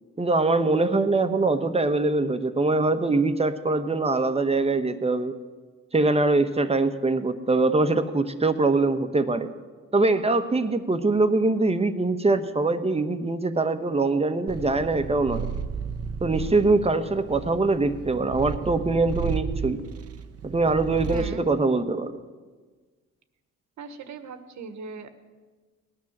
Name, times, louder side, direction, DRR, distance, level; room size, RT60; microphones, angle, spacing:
voice 1, 0.2-5.3 5.9-9.5 9.9-15.5 16.2-19.8 20.4-22.1, right 3 dB, 20° right, 9 dB, 1.2 m, -23 dB
Purr, 14.5-21.4, right 6 dB, 50° right, 0.9 m, -33 dB
voice 2, 21.1-21.5 23.8-25.1, right 4 dB, 70° right, 9 dB, 1.6 m, -39 dB
18.0 x 10.5 x 7.4 m, 1.4 s
cardioid pair, 90°, 30 cm